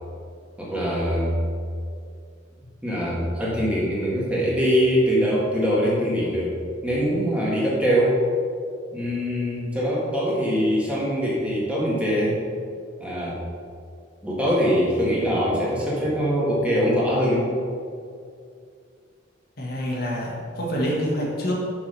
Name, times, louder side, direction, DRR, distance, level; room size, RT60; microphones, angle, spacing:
voice 1, 0.6-1.3 2.8-8.2 8.9-12.4 13.0-13.4 14.2-17.5, equal, 5° right, -6 dB, 1.6 m, -23 dB
voice 2, 19.6-21.5, equal, 55° left, -3 dB, 1.5 m, -26 dB
6.1 x 5.8 x 5.5 m, 2.3 s
head